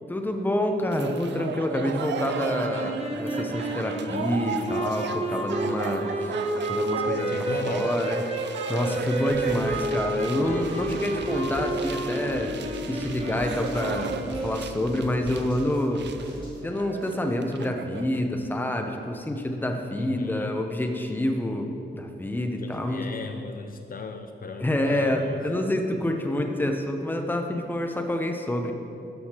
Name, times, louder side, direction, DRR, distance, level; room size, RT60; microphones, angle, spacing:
voice 1, 0.1-6.4 6.7-8.2 8.7-12.5 12.9-16.0 16.6-23.0 24.6-28.7, left 1 dB, 10° left, 4 dB, 0.6 m, -27 dB
sound 1, 0.9-18.2, right 7 dB, 80° right, 0.4 m, -36 dB
sound 2, 2.1-14.8, right 1 dB, 35° right, 1.0 m, -31 dB
voice 2, 7.3-7.9 20.0-20.5 22.6-25.4 26.4-26.5, left 5 dB, 55° left, 6 dB, 0.4 m, -36 dB
sound 3, 9.3-16.5, equal, 25° left, 1.8 m, -41 dB
13.0 x 6.3 x 2.9 m, 2.7 s
wide cardioid pair, 120°, 18 cm